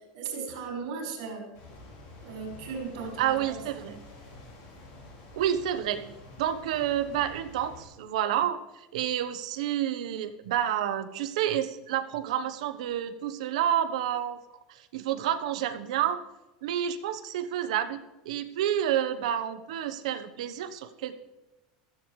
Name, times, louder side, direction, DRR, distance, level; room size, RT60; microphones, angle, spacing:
voice 1, 0.1-1.5 2.2-3.9, right 5 dB, 70° right, 0 dB, 5.3 m, -37 dB
sound 1, 1.5-7.8, left 2 dB, 45° left, 5.0 m, -48 dB
voice 2, 3.2-3.9 5.3-6.1 6.4-14.4 14.7-16.2 16.6-18.0 18.2-21.1, right 10 dB, 85° right, 9 dB, 1.1 m, -29 dB
16.5 x 14.0 x 3.3 m, 1.0 s
supercardioid pair, 175°, 4 cm